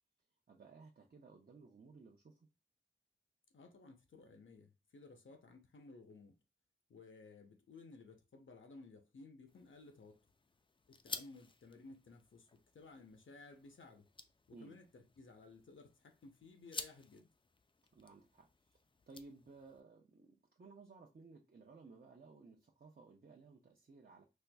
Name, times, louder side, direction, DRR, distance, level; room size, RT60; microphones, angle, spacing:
voice 1, 0.5-2.5 14.5-14.8 17.9-24.2, right 4 dB, 45° right, 0.6 m, -58 dB
voice 2, 3.5-6.4 6.9-10.2 10.9-14.1 14.5-17.3, left 3 dB, 70° left, 0.7 m, -57 dB
sound 1, 9.5-19.8, left 3 dB, 25° left, 0.3 m, -53 dB
4.3 x 2.5 x 2.3 m
wide cardioid pair, 75°, 21 cm